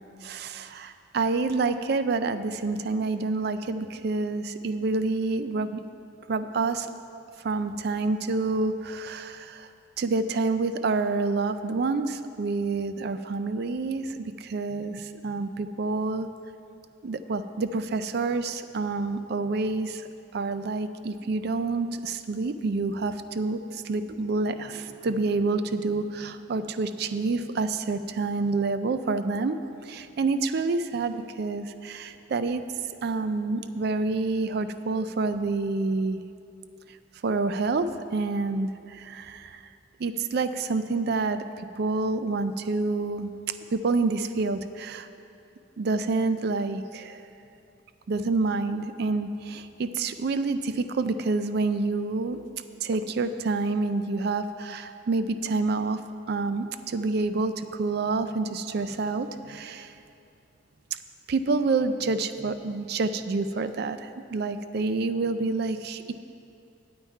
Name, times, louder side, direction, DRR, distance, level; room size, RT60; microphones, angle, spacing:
voice 1, 0.0-5.8 6.3-6.9 7.4-9.7 10.0-16.3 17.0-32.6 33.0-36.2 37.2-39.6 40.0-43.3 43.7-45.1 45.8-47.2 48.1-52.4 52.8-56.0 56.3-59.9 61.3-66.1, right 3 dB, 55° right, 11 dB, 0.4 m, -28 dB
9.0 x 8.8 x 4.5 m, 2.6 s
head